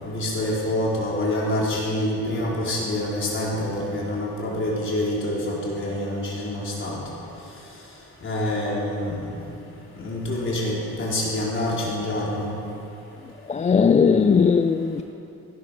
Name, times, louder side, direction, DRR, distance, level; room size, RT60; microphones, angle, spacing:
voice 1, 0.0-7.0 8.2-9.3 10.0-12.5, left 1 dB, 40° left, 4.6 m, -26 dB
voice 2, 13.5-15.0, left 6 dB, 25° left, 0.4 m, -18 dB
16.5 x 11.0 x 6.6 m
cardioid pair, 110°, 30 cm